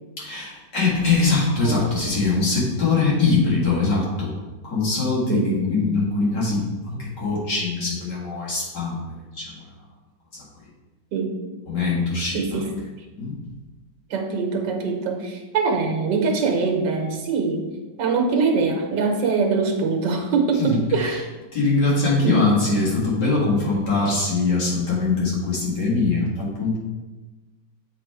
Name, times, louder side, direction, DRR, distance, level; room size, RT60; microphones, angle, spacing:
voice 1, 0.2-4.3 4.6-9.6 10.3-10.4 11.7-12.7 13.1-13.4 20.6-21.2 21.5-26.8, left 3 dB, 70° left, -6 dB, 2.5 m, -22 dB
voice 2, 12.3-12.7 14.1-17.7 18.0-21.2 22.2-22.4, right 4 dB, 80° right, 3 dB, 1.5 m, -23 dB
7.4 x 3.6 x 4.6 m, 1.2 s
omnidirectional pair, 1.9 m